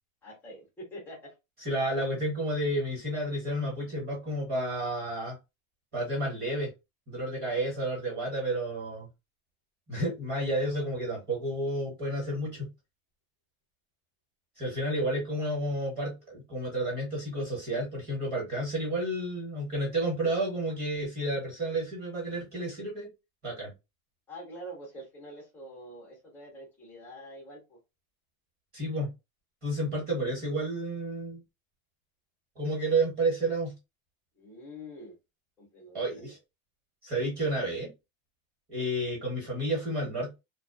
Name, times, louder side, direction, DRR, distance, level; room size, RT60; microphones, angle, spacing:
voice 1, 0.2-1.3 24.3-27.8 34.4-35.1 35.6-36.3, equal, 5° left, 0.4 m, -45 dB
voice 2, 1.6-5.4 5.9-6.7 7.1-9.1 9.9-12.7 14.6-23.1 23.4-23.7 28.7-29.1 29.6-31.4 32.6-33.7 35.9-36.4 37.0-37.9 38.7-40.4, right 1 dB, 20° right, 1.1 m, -31 dB
2.5 x 2.2 x 2.4 m
supercardioid pair, 175°, 43 cm